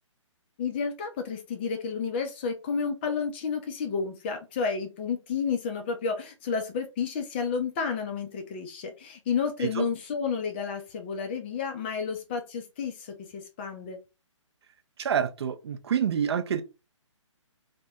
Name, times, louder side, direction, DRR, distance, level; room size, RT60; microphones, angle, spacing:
voice 1, 0.6-14.0, left 5 dB, 20° left, 0.3 m, -31 dB
voice 2, 15.0-16.6, right 8 dB, 55° right, 0.4 m, -27 dB
2.1 x 2.1 x 3.4 m
figure-of-eight pair, 135°, 16 cm